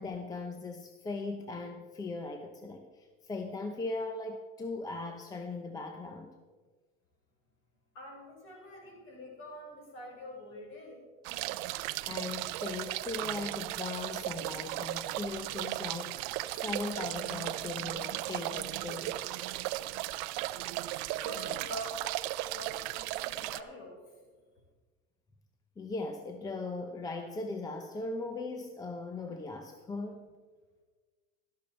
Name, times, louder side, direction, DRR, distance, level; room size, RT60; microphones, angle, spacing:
voice 1, 0.0-6.3 12.1-19.2 25.8-30.2, left 3 dB, 10° left, 6 dB, 0.6 m, -39 dB
voice 2, 7.9-11.1 21.1-22.1 22.4-24.0, equal, 45° left, 0 dB, 4.5 m, -45 dB
sound 1, 11.2-23.6, right 17 dB, 60° right, 0.5 m, -36 dB
12.5 x 12.0 x 4.4 m, 1.4 s
supercardioid pair, 140°, 30 cm